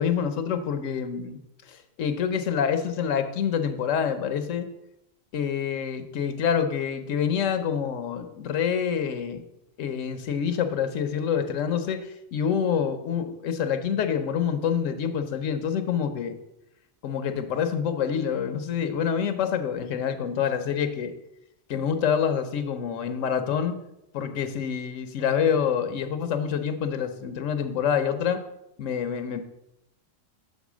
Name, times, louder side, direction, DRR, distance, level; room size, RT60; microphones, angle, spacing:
voice 1, 0.0-1.4 1.7-4.7 5.3-9.4 9.8-16.4 17.0-21.1 21.7-23.8 24.1-28.4 28.8-29.4, left 7 dB, 85° left, 9 dB, 1.1 m, -27 dB
6.4 x 3.8 x 6.1 m, 0.85 s
omnidirectional pair, 1.3 m